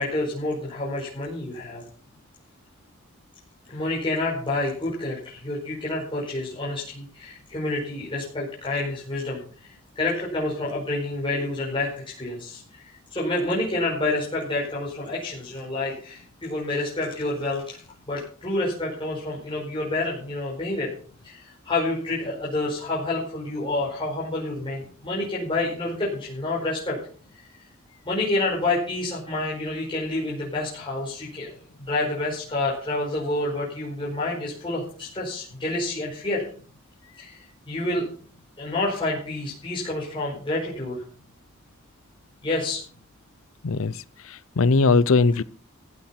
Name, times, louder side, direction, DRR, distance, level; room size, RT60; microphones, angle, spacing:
voice 1, 0.0-1.8 3.7-12.8 13.1-17.8 18.1-20.9 21.2-27.0 28.0-31.6 31.9-36.4 37.2-38.1 38.6-41.0 42.4-42.8, left 2 dB, 25° left, 4.9 m, -28 dB
voice 2, 43.6-45.4, left 3 dB, 85° left, 0.7 m, -20 dB
15.0 x 8.7 x 5.8 m
head